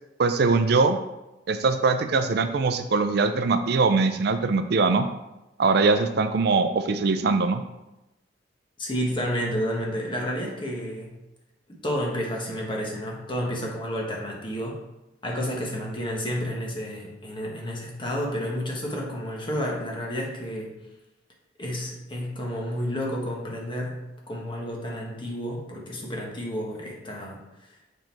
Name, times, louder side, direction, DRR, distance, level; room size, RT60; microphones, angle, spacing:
voice 1, 0.2-1.0 1.5-5.1 5.6-7.6, right 4 dB, 60° right, 9 dB, 0.5 m, -22 dB
voice 2, 8.8-11.2 11.8-14.8 15.2-20.7 21.6-27.4, equal, 25° left, -2 dB, 1.4 m, -30 dB
6.7 x 3.9 x 4.5 m, 0.96 s
head